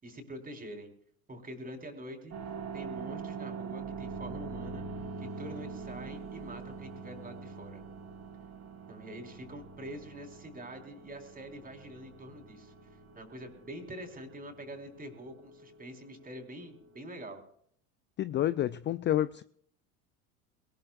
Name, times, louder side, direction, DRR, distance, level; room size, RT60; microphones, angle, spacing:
voice 1, 0.0-0.9 1.3-2.3 2.7-4.8 5.2-7.8 8.9-12.7 13.1-17.4, right 1 dB, 20° right, 4.6 m, -45 dB
sound 1, 2.3-17.3, right 5 dB, 35° right, 3.9 m, -44 dB
voice 2, 18.2-19.4, left 12 dB, 25° left, 0.5 m, -29 dB
22.0 x 19.0 x 2.6 m
hypercardioid pair, 90°, 43 cm